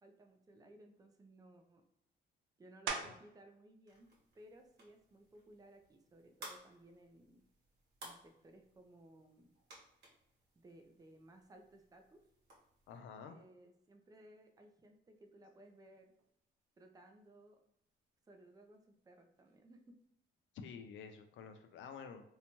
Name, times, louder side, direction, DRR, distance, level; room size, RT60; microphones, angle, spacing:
voice 1, 0.0-1.8 2.6-4.1 4.3-7.4 8.0-9.5 10.6-12.2 13.2-16.1 16.8-17.6 18.3-20.0, right 1 dB, 20° right, 4 dB, 0.4 m, -60 dB
sound 1, 2.9-3.5 4.0-8.4 9.0-14.1 14.4-20.1, right 5 dB, 80° right, 0.5 m, -52 dB
sound 2, 3.9-13.0, right 1 dB, 55° right, 1.1 m, -59 dB
voice 2, 12.9-13.4 20.5-22.3, left 6 dB, 75° left, 7 dB, 0.4 m, -50 dB
2.7 x 2.1 x 2.9 m, 0.76 s
cardioid pair, 90°, 20 cm